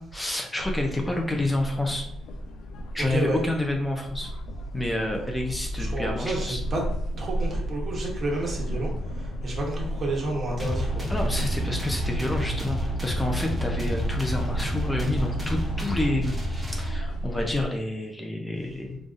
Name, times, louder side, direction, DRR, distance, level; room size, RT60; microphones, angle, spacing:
voice 1, 0.0-2.1 2.9-4.3 4.7-6.6 11.1-19.0, left 1 dB, 15° left, 1 dB, 0.5 m, -29 dB
sound 1, 0.6-17.6, equal, 75° left, 0.4 m, -33 dB
voice 2, 3.1-3.4 5.8-6.8 7.2-8.9 9.2-11.1, right 2 dB, 45° right, -2 dB, 1.1 m, -30 dB
sound 2, 10.6-17.3, equal, 10° right, 1.0 m, -31 dB
3.9 x 2.4 x 2.5 m, 0.72 s
cardioid pair, 90°, 0 cm